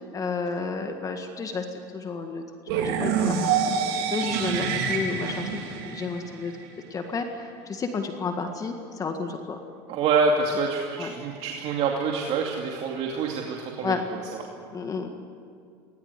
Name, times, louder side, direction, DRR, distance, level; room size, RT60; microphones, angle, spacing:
voice 1, 0.1-2.4 2.7-6.5 6.9-9.6 11.0-11.1 13.8-14.0 14.7-15.1, left 4 dB, 25° left, 5 dB, 1.8 m, -31 dB
sound 1, 2.7-6.6, right 6 dB, 80° right, 3.6 m, -27 dB
voice 2, 9.9-14.2, right 4 dB, 55° right, 0 dB, 2.5 m, -26 dB
20.0 x 19.5 x 9.8 m, 2.3 s
supercardioid pair, 120°, 13 cm